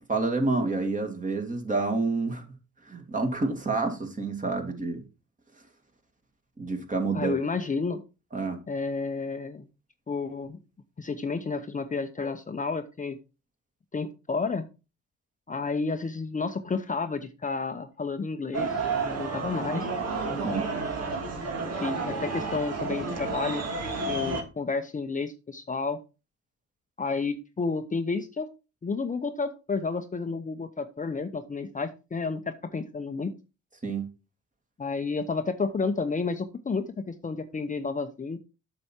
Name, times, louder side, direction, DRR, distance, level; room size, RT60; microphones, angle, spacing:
voice 1, 0.1-2.4 2.9-5.0 6.6-7.4 8.3-8.6 20.4-20.7 33.8-34.1, right 3 dB, 25° right, 2.2 m, -28 dB
voice 2, 7.1-8.0 8.7-9.7 10.1-10.6 11.0-13.1 13.9-14.6 15.5-18.7 19.0-19.9 21.6-23.6 24.1-26.0 27.0-28.5 28.8-32.4 32.7-33.3 34.8-38.4, left 4 dB, 25° left, 0.8 m, -31 dB
sound 1, 18.5-24.4, right 3 dB, 55° right, 2.2 m, -31 dB
7.8 x 6.1 x 4.4 m
cardioid pair, 90°, 30 cm